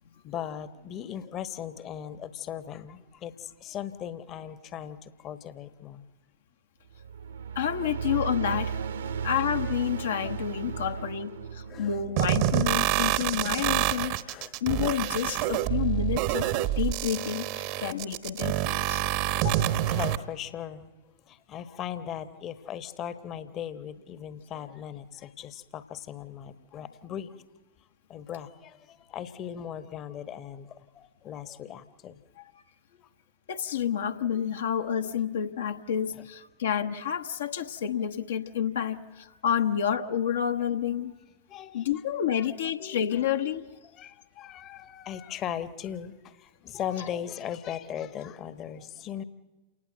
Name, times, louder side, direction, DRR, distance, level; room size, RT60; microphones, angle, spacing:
voice 1, 0.2-6.0 11.7-11.9 14.3-14.5 17.7-17.8 19.9-20.9 21.3-27.4 28.1-32.2 33.0-33.1 34.3-34.4 35.4-35.5 36.1-36.3 41.5-42.0 42.3-42.5 42.8-43.2 43.9-49.2, left 9 dB, 35° left, 13 dB, 1.2 m, -38 dB
sound 1, 6.9-13.5, right 7 dB, 65° right, 1.3 m, -36 dB
voice 2, 7.5-8.8 9.2-14.2 14.6-16.5 16.8-19.0 19.3-19.8 32.4-32.5 33.5-41.1 41.7-43.6, left 9 dB, 65° left, 7 dB, 1.1 m, -29 dB
sound 2, 12.2-20.2, right 13 dB, 45° right, 1.1 m, -27 dB
29.0 x 18.5 x 7.9 m, 1.2 s
figure-of-eight pair, 90°, 0 cm